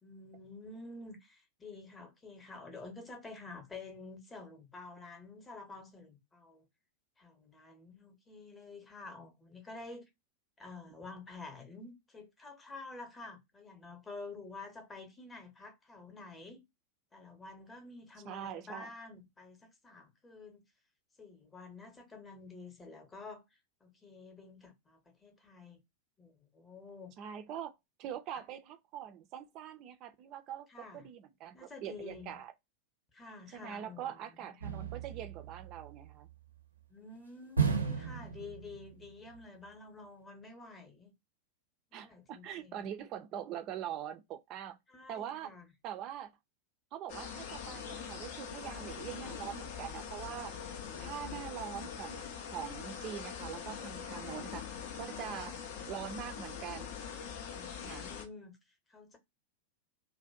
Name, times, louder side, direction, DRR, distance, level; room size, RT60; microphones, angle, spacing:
voice 1, 0.0-6.7 7.2-10.0 10.6-16.6 17.1-20.6 21.2-23.4 23.8-25.8 26.2-27.2 28.3-28.4 30.7-31.1 31.5-32.4 33.1-34.5 36.9-41.1 41.9-42.9 44.9-45.7 50.9-51.9 54.1-54.3 57.5-58.5 58.9-59.2, left 3 dB, 15° left, 0.8 m, -49 dB
voice 2, 18.3-18.9 27.2-27.7 28.0-32.5 33.5-36.3 41.9-44.8 45.1-45.5 45.8-46.3 46.9-50.5 51.0-54.6 55.0-55.6 55.9-56.9 57.8-58.2, right 10 dB, 40° right, 0.4 m, -43 dB
sound 1, 34.6-36.3 37.6-39.1 39.4-39.5, right 6 dB, 80° right, 0.6 m, -35 dB
sound 2, 47.1-58.3, left 7 dB, 50° left, 0.5 m, -43 dB
2.5 x 2.2 x 2.5 m
figure-of-eight pair, 90°, 0 cm